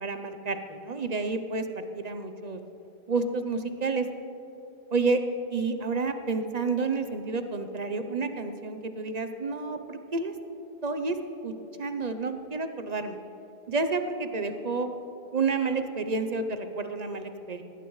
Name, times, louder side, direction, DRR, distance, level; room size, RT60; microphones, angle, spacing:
voice 1, 0.0-1.7 1.9-2.6 3.1-4.1 4.9-5.2 5.5-10.3 10.8-11.2 11.4-11.5 11.8-13.2 13.7-14.9 15.3-17.6, right 4 dB, 45° right, 8 dB, 0.8 m, -30 dB
19.0 x 15.0 x 3.2 m, 2.9 s
omnidirectional pair, 1.1 m